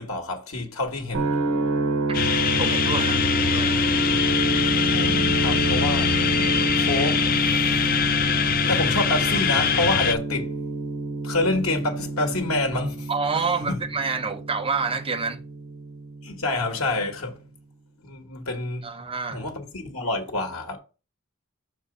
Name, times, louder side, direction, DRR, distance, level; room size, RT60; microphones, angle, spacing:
voice 1, 0.0-1.4 4.9-6.1 6.7-7.3 8.7-10.5 11.2-13.1 13.7-13.8 16.2-17.4 18.0-18.9 19.3-20.8, left 2 dB, 90° left, 1.5 m, -27 dB
sound 1, 1.1-17.1, right 2 dB, 85° right, 1.1 m, -28 dB
sound 2, 2.1-10.2, left 7 dB, 45° left, 0.5 m, -23 dB
voice 2, 2.4-3.7 13.1-15.4 18.8-19.4, right 4 dB, 25° right, 0.9 m, -28 dB
5.8 x 4.5 x 5.1 m
head